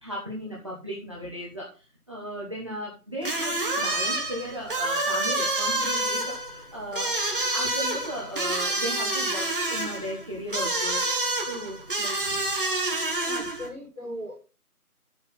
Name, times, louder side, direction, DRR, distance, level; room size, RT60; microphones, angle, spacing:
voice 1, 0.0-7.2 7.5-11.0 11.4-12.4, equal, 20° right, -4 dB, 1.2 m, -36 dB
sound 1, 3.2-13.7, right 2 dB, 35° right, 1.5 m, -28 dB
voice 2, 13.2-14.4, equal, 5° right, -16 dB, 1.5 m, -38 dB
9.2 x 7.1 x 4.0 m, 0.34 s
figure-of-eight pair, 165°, 45 cm